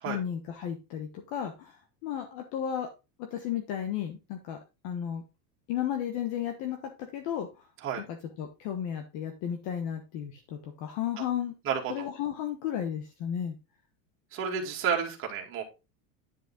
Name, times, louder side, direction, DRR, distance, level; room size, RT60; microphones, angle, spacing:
voice 1, 0.1-2.9 3.3-4.6 4.8-5.2 5.7-7.7 8.0-8.1 8.4-11.5 11.9-13.6, left 9 dB, 45° left, 5 dB, 1.3 m, -34 dB
voice 2, 11.6-12.1 14.3-15.6, right 7 dB, 30° right, -1 dB, 2.5 m, -31 dB
10.0 x 5.5 x 3.7 m, 0.27 s
cardioid pair, 175°, 45 cm